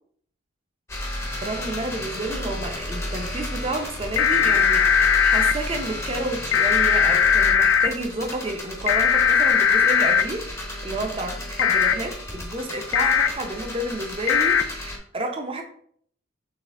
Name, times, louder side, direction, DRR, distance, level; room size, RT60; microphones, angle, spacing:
sound 1, 0.9-15.0, left 1 dB, 15° left, 0.7 m, -33 dB
voice 1, 1.4-15.6, right 2 dB, 30° right, 4 dB, 0.6 m, -31 dB
sound 2, 4.2-5.5 6.5-7.9 8.9-10.2 11.6-11.9 12.9-13.3 14.3-14.6, left 7 dB, 75° left, 0.3 m, -18 dB
4.2 x 3.1 x 3.6 m, 0.62 s
head